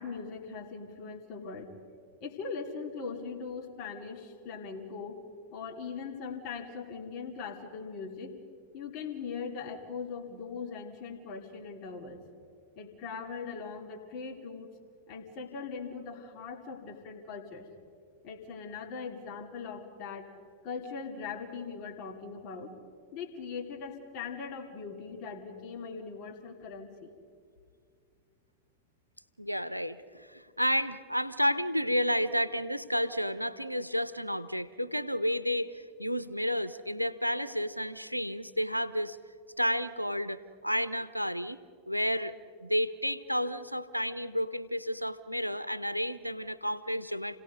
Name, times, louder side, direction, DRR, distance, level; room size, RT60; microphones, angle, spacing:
voice 1, 0.0-1.7 2.2-5.2 5.5-8.3 8.7-12.3 12.8-14.7 15.1-17.7 18.2-20.3 20.6-22.7 23.1-27.1, left 5 dB, 40° left, 1 dB, 2.8 m, -40 dB
voice 2, 29.4-39.2 39.6-41.6 41.9-42.3 42.6-47.4, equal, 90° right, 15 dB, 0.7 m, -31 dB
29.0 x 17.5 x 5.3 m, 2.2 s
figure-of-eight pair, 90°, 0 cm